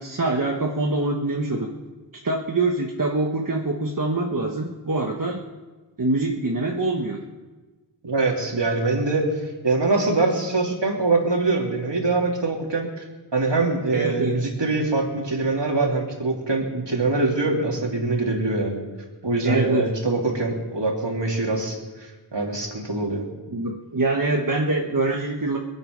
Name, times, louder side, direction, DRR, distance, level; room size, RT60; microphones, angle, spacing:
voice 1, 0.0-1.7 2.2-5.4 6.0-7.2 13.9-14.5 19.4-19.9 23.5-25.6, right 2 dB, 45° right, 0 dB, 1.4 m, -24 dB
voice 2, 8.0-9.3 9.6-13.0 13.3-18.8 19.2-23.2, right 3 dB, 65° right, 0 dB, 3.0 m, -23 dB
25.0 x 8.8 x 5.3 m, 1.2 s
wide cardioid pair, 55°, 46 cm